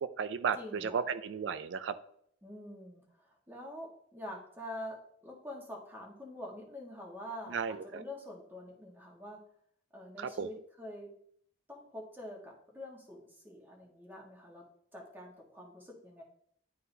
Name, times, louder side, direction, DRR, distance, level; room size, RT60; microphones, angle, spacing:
voice 1, 0.0-2.0 7.5-8.0 10.2-10.5, right 6 dB, 75° right, 12 dB, 0.3 m, -34 dB
voice 2, 0.5-1.1 2.4-9.4 9.9-11.1 11.7-14.6 14.9-16.2, left 1 dB, 10° right, -1 dB, 1.4 m, -46 dB
11.0 x 3.8 x 2.7 m, 0.68 s
head